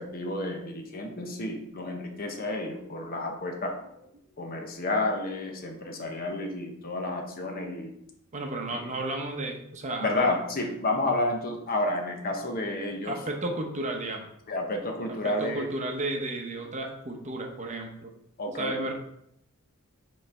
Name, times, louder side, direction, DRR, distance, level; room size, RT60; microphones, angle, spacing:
voice 1, 0.0-3.8 4.4-7.9 8.7-8.9 10.0-13.2 14.5-15.7 18.4-18.9, left 2 dB, 40° left, 3 dB, 0.9 m, -30 dB
voice 2, 8.3-10.3 13.1-14.3 15.2-18.1 18.6-18.9, right 2 dB, 35° right, 2 dB, 0.8 m, -33 dB
5.4 x 3.2 x 5.5 m, 0.77 s
head